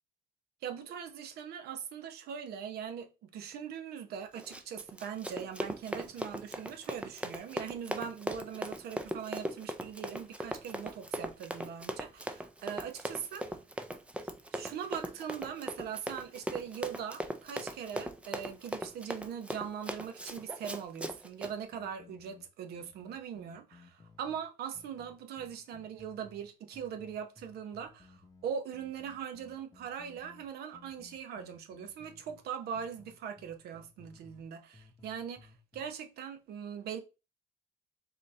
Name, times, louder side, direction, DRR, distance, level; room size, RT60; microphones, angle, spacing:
voice 1, 0.6-13.6 14.5-37.0, right 8 dB, 70° right, 0.7 m, -41 dB
Run, 4.3-21.5, right 1 dB, 5° right, 0.4 m, -39 dB
sound 1, 21.7-24.4 24.7-26.5 26.7-32.4 32.7-34.5 34.7-35.8, left 4 dB, 20° left, 0.8 m, -58 dB
4.0 x 2.6 x 3.2 m
cardioid pair, 110°, 17 cm